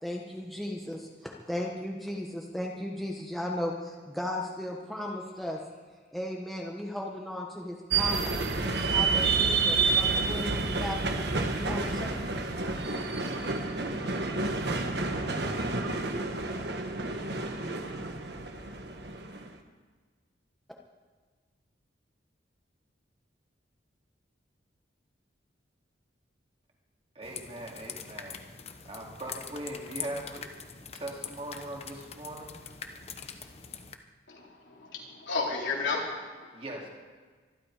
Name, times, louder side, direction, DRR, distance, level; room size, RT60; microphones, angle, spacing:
voice 1, 0.0-5.6 6.1-8.3 8.9-11.1 11.5-12.1, left 1 dB, ahead, -2 dB, 1.2 m, -36 dB
sound 1, 7.9-19.5, right 3 dB, 60° right, 1.4 m, -29 dB
voice 2, 27.1-28.4 28.8-30.4 30.9-32.5 36.5-36.9, right 1 dB, 30° right, -1 dB, 2.8 m, -40 dB
sound 2, 27.2-34.0, left 7 dB, 35° left, 1.0 m, -43 dB
voice 3, 34.3-36.5, left 4 dB, 75° left, -2 dB, 3.7 m, -33 dB
24.5 x 11.5 x 5.0 m, 1.5 s
head